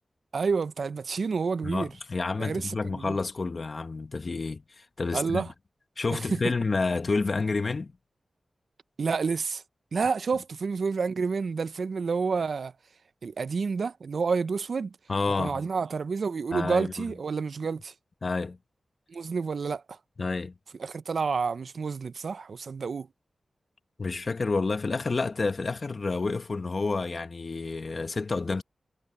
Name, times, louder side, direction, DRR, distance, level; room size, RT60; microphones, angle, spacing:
voice 1, 0.3-1.9 2.4-3.2 5.1-5.5 6.1-6.4 9.0-9.6 9.9-12.7 13.2-15.0 15.4-17.9 19.1-20.0 20.8-23.1, right 5 dB, 70° right, 0.5 m, -29 dB
voice 2, 1.6-5.4 6.0-7.9 15.1-15.6 16.5-16.9 18.2-18.6 20.2-20.5 24.0-28.6, left 3 dB, 50° left, 1.3 m, -29 dB
wide cardioid pair, 75°, 0 cm